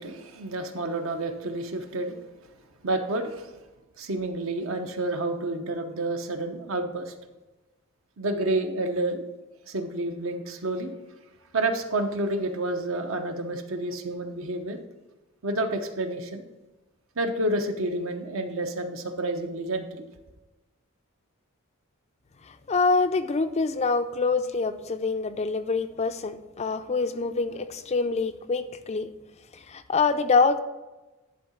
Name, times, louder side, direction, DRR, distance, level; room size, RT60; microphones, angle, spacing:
voice 1, 0.0-2.2 2.8-3.5 4.0-7.1 8.2-9.3 9.7-10.9 11.5-14.8 15.4-16.4 17.2-20.0, right 2 dB, 65° right, 6 dB, 0.9 m, -29 dB
voice 2, 22.4-29.1 29.5-30.6, left 4 dB, 30° left, 9 dB, 0.4 m, -25 dB
11.0 x 3.8 x 5.7 m, 1.1 s
head